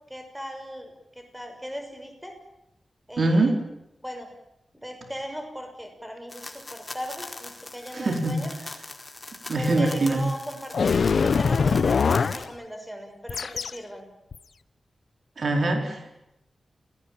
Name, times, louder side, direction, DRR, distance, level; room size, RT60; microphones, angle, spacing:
voice 1, 0.1-2.3 3.1-3.5 4.0-4.3 4.7-8.5 9.6-14.1, equal, 5° right, 5 dB, 6.3 m, -38 dB
voice 2, 3.2-3.6 7.9-8.3 9.5-10.2 15.4-16.1, right 2 dB, 65° right, 4 dB, 4.6 m, -23 dB
sound 1, 6.3-12.4, left 2 dB, 25° left, 4.4 m, -41 dB
sound 2, 10.7-12.5 13.3-13.8 14.3-14.4, left 5 dB, 75° left, 0.9 m, -22 dB
28.5 x 19.0 x 8.9 m, 0.86 s
wide cardioid pair, 95°, 0 cm